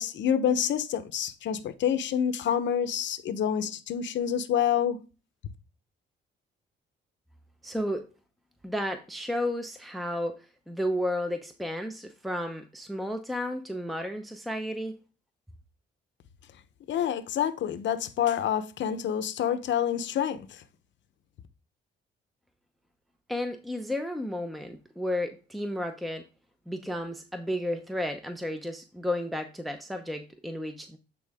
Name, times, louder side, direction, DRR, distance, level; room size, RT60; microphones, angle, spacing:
voice 1, 0.0-5.0 16.9-20.6, left 9 dB, 65° left, 0.8 m, -27 dB
voice 2, 7.6-8.0 8.6-10.3 10.7-14.9 23.3-26.2 26.7-31.0, left 1 dB, ahead, 0.7 m, -32 dB
8.5 x 3.8 x 3.5 m
cardioid pair, 90°, 20 cm